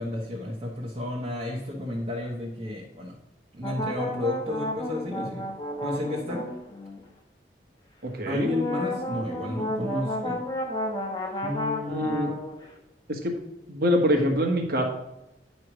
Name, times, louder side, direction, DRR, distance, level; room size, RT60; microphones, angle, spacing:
voice 1, 0.0-3.2 3.5-5.5 5.8-6.4 8.2-10.4 11.4-12.4, left 2 dB, 35° right, -4 dB, 1.1 m, -32 dB
sound 1, 3.6-7.0 8.4-12.7, equal, 25° left, 1.0 m, -32 dB
voice 2, 8.0-8.5 11.9-12.3 13.1-13.4 13.7-14.8, equal, 55° right, 3 dB, 1.4 m, -24 dB
9.5 x 3.2 x 6.1 m, 0.89 s
head